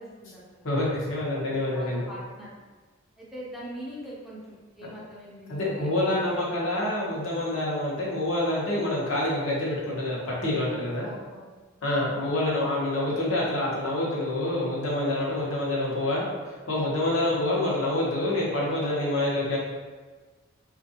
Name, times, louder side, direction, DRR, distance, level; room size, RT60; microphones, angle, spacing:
voice 1, 0.0-0.7 1.4-2.5 3.2-6.4 11.0-11.5, equal, ahead, -7 dB, 0.7 m, -42 dB
voice 2, 0.6-2.0 5.5-11.1 11.8-19.6, left 1 dB, 65° left, -5 dB, 0.9 m, -27 dB
3.4 x 2.5 x 2.7 m, 1.3 s
head